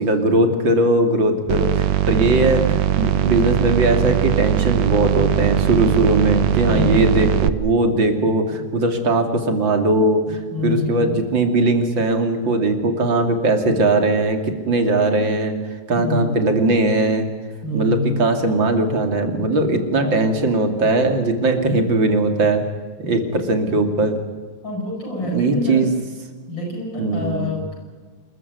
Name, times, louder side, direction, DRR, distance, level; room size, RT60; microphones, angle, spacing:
voice 1, 0.0-15.5 15.9-17.3 17.7-22.7 23.0-24.2 25.2-25.9 27.0-27.5, right 2 dB, 90° right, 6 dB, 3.4 m, -19 dB
sound 1, 1.5-7.5, right 12 dB, 75° right, 1.5 m, -20 dB
voice 2, 6.7-7.2 10.5-11.1 15.9-16.4 17.6-18.2 20.0-20.3 24.6-25.9 26.5-27.8, left 2 dB, 80° left, 0 dB, 8.6 m, -26 dB
27.5 x 14.0 x 9.5 m, 1.4 s
omnidirectional pair, 2.0 m